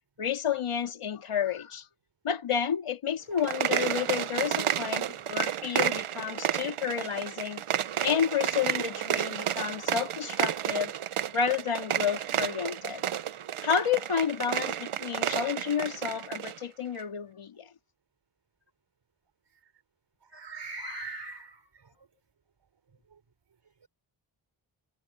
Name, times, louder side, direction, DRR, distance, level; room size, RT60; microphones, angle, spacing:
voice 1, 0.2-1.8 2.2-7.6 8.0-10.9 11.3-13.0 13.6-17.7 20.7-21.2, left 7 dB, 85° left, 2.8 m, -30 dB
sound 1, 3.3-16.6, right 10 dB, 85° right, 1.0 m, -31 dB
voice 2, 20.3-22.1 23.1-23.2, right 5 dB, 55° right, 5.0 m, -42 dB
wide cardioid pair, 120°, 49 cm